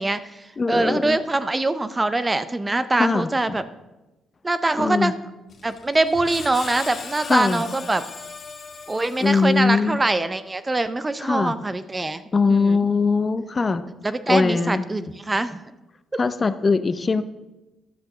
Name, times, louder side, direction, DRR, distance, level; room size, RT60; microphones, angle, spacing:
voice 1, 0.0-3.6 4.4-5.2 5.6-8.0 8.9-12.2 12.5-12.9 14.0-15.6, right 2 dB, 20° right, 12 dB, 0.6 m, -23 dB
voice 2, 0.6-1.2 3.0-3.6 4.8-5.1 7.3-7.6 9.2-10.0 11.2-11.5 12.3-13.8 14.3-14.8 16.2-17.2, left 4 dB, 30° left, 11 dB, 0.6 m, -21 dB
Screech, 5.5-9.8, left 5 dB, 50° left, 1.4 m, -38 dB
11.0 x 6.8 x 6.1 m, 1.0 s
cardioid pair, 90°, 0 cm